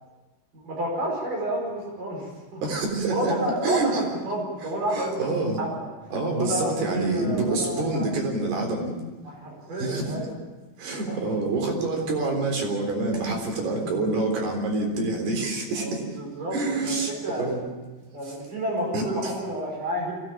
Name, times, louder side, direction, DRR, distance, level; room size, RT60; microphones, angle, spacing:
voice 1, 0.5-2.6 3.1-5.3 5.6-5.8 6.3-8.2 9.2-10.3 11.1-11.2 13.7-14.0 15.7-17.6 18.1-20.1, right 1 dB, 50° right, -1 dB, 6.7 m, -30 dB
voice 2, 2.6-3.3 3.6-4.0 4.9-5.6 6.1-8.9 9.8-10.1 10.8-16.0 16.5-17.1 17.4-17.6 18.9-19.0, right 3 dB, 65° right, 2 dB, 5.9 m, -26 dB
23.5 x 17.5 x 8.9 m, 1.2 s
omnidirectional pair, 5.0 m